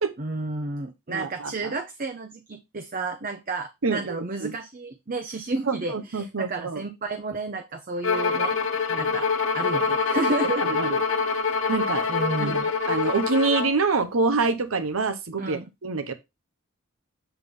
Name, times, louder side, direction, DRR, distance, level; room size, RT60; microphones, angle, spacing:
voice 1, 0.2-8.6 9.0-9.3 9.5-10.8 12.1-12.7 15.4-15.7, right 3 dB, 40° right, 0.7 m, -31 dB
voice 2, 1.1-1.7 3.8-4.5 5.7-6.8 8.9-9.1 10.7-11.0 11.7-12.0 12.4-16.1, right 4 dB, 80° right, 0.9 m, -26 dB
Bowed string instrument, 8.0-13.8, left 4 dB, 70° left, 1.1 m, -25 dB
8.1 x 3.6 x 5.4 m
head